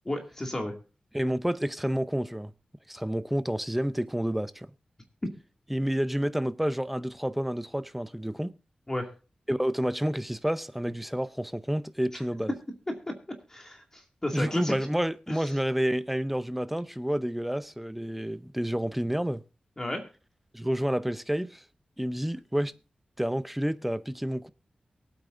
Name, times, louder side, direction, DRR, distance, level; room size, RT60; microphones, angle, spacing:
voice 1, 0.1-0.7 8.9-9.1 12.1-12.2 13.1-13.2 13.5-14.8 19.8-20.0, left 1 dB, 20° left, 2.2 m, -32 dB
voice 2, 1.1-2.5 2.9-4.7 5.7-8.5 9.5-12.5 14.3-19.4 20.5-21.6 22.0-22.7 23.2-24.5, equal, 5° right, 0.6 m, -29 dB
23.0 x 8.6 x 2.5 m
wide cardioid pair, 100°, 3 cm